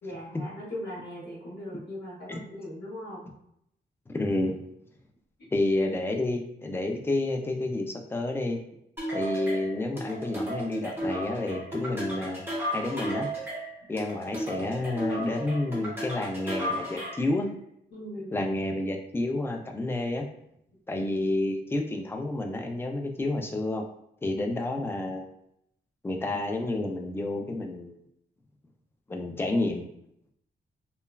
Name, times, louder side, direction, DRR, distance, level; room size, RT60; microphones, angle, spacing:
voice 1, 0.0-3.3 17.9-18.4, left 1 dB, 65° left, -6 dB, 0.9 m, -39 dB
voice 2, 4.1-4.6 5.5-8.6 9.1-12.4 12.7-13.3 13.9-17.5 18.3-20.2 20.9-23.8 24.2-25.3 26.0-27.9 29.1-29.9, left 2 dB, 15° left, 3 dB, 0.3 m, -29 dB
sound 1, 9.0-17.3, equal, 10° right, 1.0 m, -34 dB
3.0 x 2.2 x 2.3 m, 0.76 s
wide cardioid pair, 115°, 18 cm